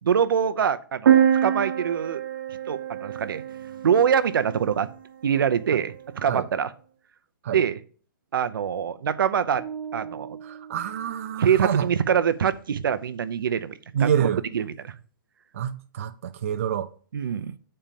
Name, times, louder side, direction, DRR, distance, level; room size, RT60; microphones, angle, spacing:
voice 1, 0.0-2.2 2.7-3.4 3.8-4.9 5.2-6.7 7.5-7.8 8.3-9.6 9.9-10.3 11.4-13.7 14.0-14.3 14.5-14.9 17.1-17.5, right 8 dB, 80° right, 0.7 m, -24 dB
sound 1, 1.1-4.8, right 9 dB, 55° right, 1.1 m, -24 dB
sound 2, 9.6-11.8, right 7 dB, 5° right, 0.8 m, -40 dB
voice 2, 10.4-11.9 13.9-14.4 15.5-16.9, right 9 dB, 40° right, 0.5 m, -27 dB
8.8 x 4.4 x 5.2 m
hypercardioid pair, 175°, 11 cm